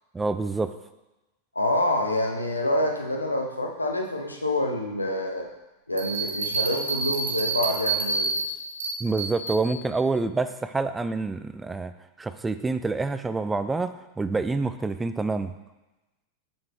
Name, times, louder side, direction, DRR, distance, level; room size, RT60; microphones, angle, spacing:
voice 1, 0.1-0.7 9.0-11.9 12.2-15.5, right 3 dB, 10° right, 11 dB, 0.3 m, -27 dB
voice 2, 1.5-5.5 5.9-8.4, left 1 dB, 85° left, 2 dB, 0.7 m, -27 dB
Bell, 6.0-9.6, right 4 dB, 65° right, 1.2 m, -28 dB
5.7 x 5.5 x 3.4 m, 1.1 s
figure-of-eight pair, 90°, 0 cm